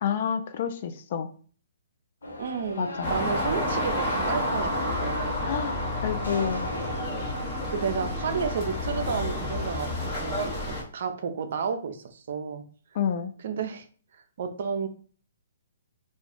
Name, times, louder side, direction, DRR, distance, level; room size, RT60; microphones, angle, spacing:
voice 1, 0.0-1.3 2.8-3.1 5.4-5.8 6.0-6.7 13.0-13.3, left 7 dB, 50° left, 8 dB, 0.4 m, -29 dB
sound 1, 2.2-9.7, left 1 dB, 90° left, 0.7 m, -41 dB
voice 2, 2.4-5.5 7.7-12.6 13.4-13.9 14.4-14.9, right 6 dB, 60° right, 8 dB, 0.5 m, -32 dB
sound 2, 3.0-10.8, left 1 dB, 35° left, 1.0 m, -30 dB
2.5 x 2.3 x 3.4 m, 0.42 s
hypercardioid pair, 130°, 0 cm